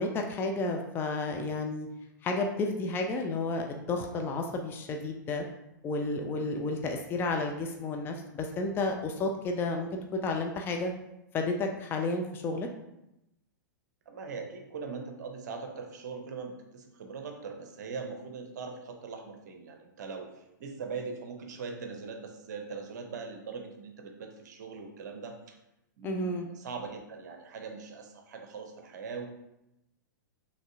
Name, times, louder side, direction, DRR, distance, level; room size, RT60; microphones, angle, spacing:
voice 1, 0.0-1.9 2.2-5.4 5.8-10.9 11.3-12.7 26.0-26.5, left 2 dB, 20° left, 3 dB, 0.4 m, -31 dB
voice 2, 14.1-25.6 26.0-29.3, right 5 dB, 60° right, 4 dB, 0.7 m, -41 dB
5.2 x 3.2 x 2.6 m, 0.88 s
figure-of-eight pair, 105°, 11 cm